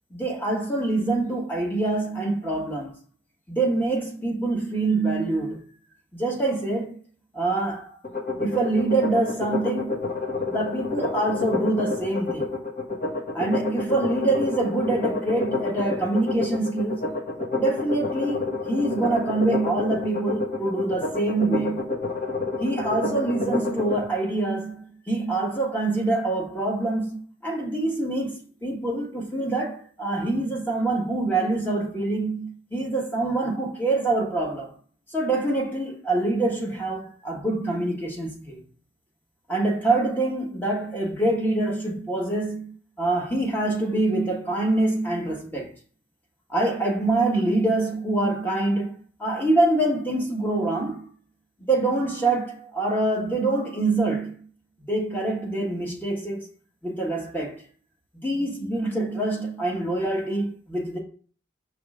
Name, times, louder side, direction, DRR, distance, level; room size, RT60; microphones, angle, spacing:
voice 1, 0.1-3.0 3.5-5.6 6.1-7.0 7.3-8.0 8.4-10.1 10.4-12.5 13.3-17.0 17.6-21.9 22.6-34.7 35.1-38.6 39.5-42.7 43.0-45.7 46.5-51.1 51.6-54.4 54.9-56.5 56.8-57.6 58.1-61.0, right 2 dB, 10° left, 1.6 m, -25 dB
sound 1, 8.0-24.0, left 3 dB, 45° left, 1.2 m, -29 dB
5.8 x 3.3 x 5.0 m
head